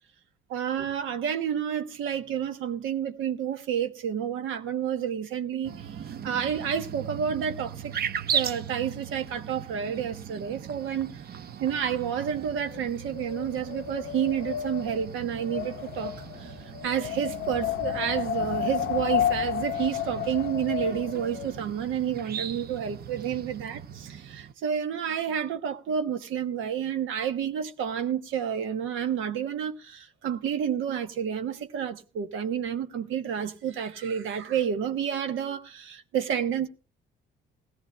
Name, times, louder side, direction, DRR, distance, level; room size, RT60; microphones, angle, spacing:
voice 1, 0.5-5.9 6.2-7.9 8.3-11.2 11.6-16.5 16.8-36.7, right 8 dB, 85° right, 1.0 m, -30 dB
sound 1, 5.6-24.5, right 8 dB, 50° right, 0.6 m, -38 dB
Wind, 12.4-21.6, left 10 dB, 60° left, 0.5 m, -32 dB
19.5 x 14.5 x 2.2 m
cardioid pair, 90°, 20 cm